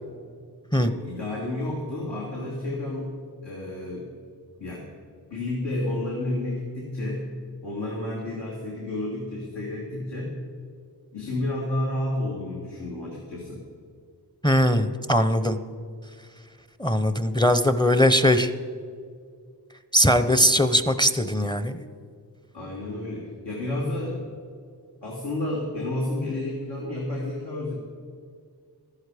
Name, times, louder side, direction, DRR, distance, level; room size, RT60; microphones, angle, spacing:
voice 1, 0.8-3.2 3.4-4.1 4.6-4.9 5.3-7.3 7.6-10.4 11.1-13.6 22.5-24.2 25.0-27.7, left 1 dB, 90° left, -4 dB, 2.4 m, -31 dB
voice 2, 14.4-15.6 16.8-18.5 19.9-21.8, equal, 10° left, 10 dB, 0.6 m, -20 dB
14.0 x 11.5 x 4.9 m, 2.2 s
wide cardioid pair, 65°, 41 cm